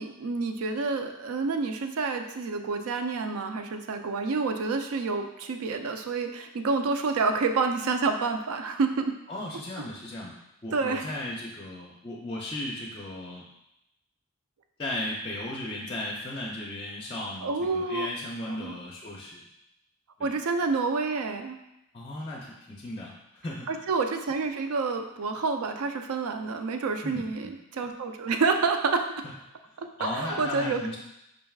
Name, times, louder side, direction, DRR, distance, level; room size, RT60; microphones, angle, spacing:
voice 1, 0.0-9.1 10.7-11.1 17.4-18.1 18.5-18.8 20.2-21.6 23.7-29.2 29.8-31.0, right 4 dB, 80° right, 6 dB, 0.4 m, -28 dB
voice 2, 9.3-10.3 10.6-13.5 14.8-19.4 20.2-20.3 21.9-23.9 27.0-27.5 30.0-31.0, left 1 dB, 25° left, -3 dB, 0.4 m, -36 dB
5.0 x 3.4 x 2.3 m, 0.85 s
head